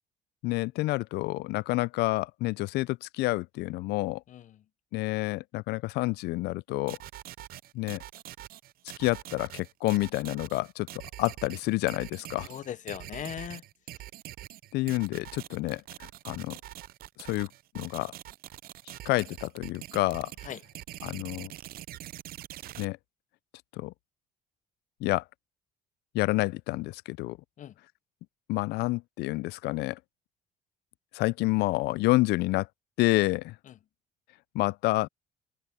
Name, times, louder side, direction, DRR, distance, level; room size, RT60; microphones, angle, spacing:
voice 1, 0.4-4.2 4.9-7.0 7.7-8.0 9.0-10.9 11.2-12.5 14.7-15.8 16.3-16.5 17.2-17.5 17.7-18.1 19.1-20.3 21.0-21.5 22.8-23.0 23.8-23.9 25.0-25.2 26.1-27.4 28.5-30.0 31.1-32.7 33.0-33.5 34.5-35.1, left 20 dB, 80° left, 0.4 m, -28 dB
voice 2, 4.3-4.6 12.5-13.6 20.4-20.6 27.6-27.7 33.6-33.8, left 10 dB, 50° left, 0.7 m, -39 dB
sound 1, 6.9-22.9, right 14 dB, 60° right, 0.5 m, -44 dB
open air
cardioid pair, 110°, 17 cm